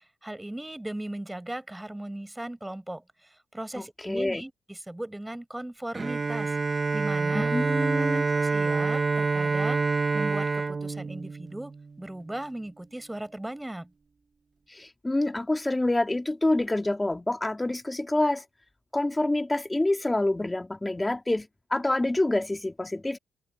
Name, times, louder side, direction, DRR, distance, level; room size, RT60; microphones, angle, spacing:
voice 1, 0.0-7.5 7.9-8.1 8.3-13.9, right 1 dB, 10° right, 5.6 m, -38 dB
voice 2, 3.8-4.4 7.3-8.2 14.7-18.4 18.9-23.2, left 2 dB, 15° left, 2.2 m, -27 dB
Bowed string instrument, 5.9-12.0, right 4 dB, 30° right, 1.3 m, -27 dB
cardioid pair, 90°, 0 cm